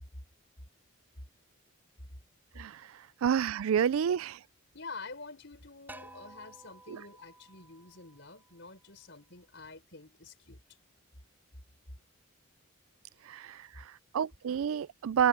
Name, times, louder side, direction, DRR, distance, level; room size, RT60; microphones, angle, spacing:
voice 1, 2.6-2.9 3.2-4.4 6.9-7.0 13.3-15.3, right 8 dB, 75° right, 0.3 m, -29 dB
voice 2, 4.7-10.6, left 3 dB, 55° left, 4.9 m, -48 dB
sound 1, 5.9-8.8, right 1 dB, 10° right, 5.7 m, -53 dB
head